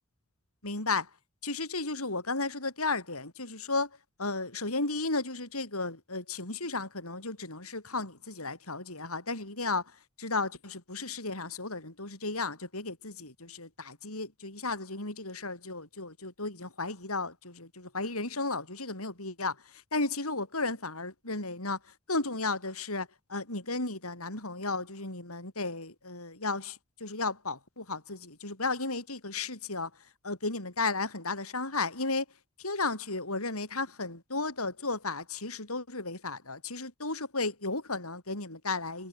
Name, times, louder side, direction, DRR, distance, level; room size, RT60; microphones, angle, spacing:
voice 1, 0.6-1.1 1.4-3.9 4.2-9.9 10.2-21.8 22.1-29.9 30.2-32.3 32.6-39.1, left 3 dB, 70° left, 7.3 m, -34 dB
head